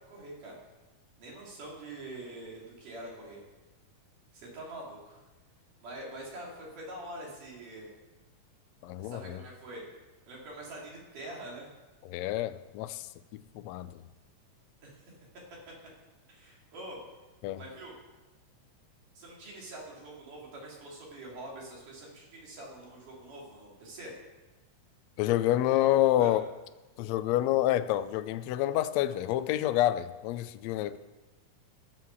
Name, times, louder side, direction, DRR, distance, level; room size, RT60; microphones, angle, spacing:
voice 1, 0.1-0.6 1.2-3.4 4.3-5.2 5.8-7.9 9.0-9.8 10.3-11.7 14.8-15.0 16.3-17.0 17.5-17.9 19.2-24.1 25.7-26.4, right 1 dB, 75° right, 4.7 m, -45 dB
voice 2, 8.8-9.4 12.1-13.1 13.3-14.0 17.4-17.6 25.2-26.5 27.0-31.0, left 13 dB, 80° left, 1.5 m, -28 dB
14.5 x 7.0 x 6.9 m
omnidirectional pair, 3.7 m